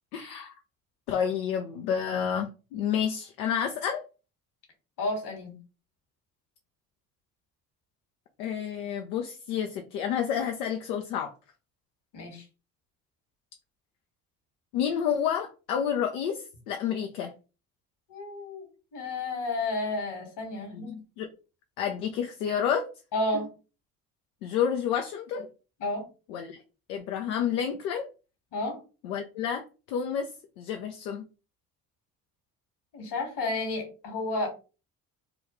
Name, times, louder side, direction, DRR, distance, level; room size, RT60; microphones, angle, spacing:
voice 1, 0.1-0.5 1.1-4.0 8.4-11.3 14.7-17.3 20.7-21.3 21.8-22.9 24.4-25.5 26.3-26.6 26.9-28.1 29.0-30.3 30.6-31.3, left 8 dB, 80° left, 4 dB, 0.5 m, -30 dB
voice 2, 5.0-5.6 12.1-12.4 18.1-18.6 18.9-20.9 23.1-23.5 25.8-26.1 28.5-28.8 32.9-34.5, left 2 dB, 65° left, 3 dB, 1.7 m, -31 dB
3.4 x 2.3 x 3.0 m, 0.33 s
hypercardioid pair, 50°, 44 cm